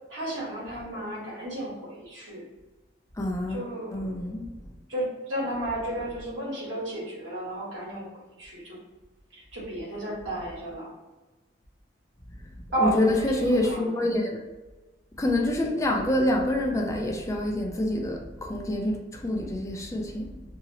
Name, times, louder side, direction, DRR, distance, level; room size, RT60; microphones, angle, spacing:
voice 1, 0.1-2.4 3.5-4.2 4.9-8.0 8.4-8.8 9.3-10.9 12.7-13.9, right 1 dB, 85° right, -5 dB, 1.3 m, -33 dB
voice 2, 3.2-4.5 12.8-14.4 15.2-20.4, left 1 dB, 15° left, 1 dB, 0.4 m, -27 dB
2.8 x 2.8 x 2.8 m, 1.2 s
head